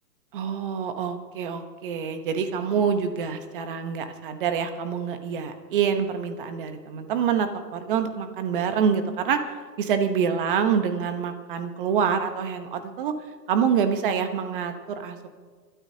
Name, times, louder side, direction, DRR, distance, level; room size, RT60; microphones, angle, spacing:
voice 1, 0.3-9.4 9.8-13.1 13.5-15.3, right 7 dB, 30° right, 8 dB, 1.1 m, -26 dB
29.5 x 13.0 x 2.8 m, 1.5 s
hypercardioid pair, 165°, 50 cm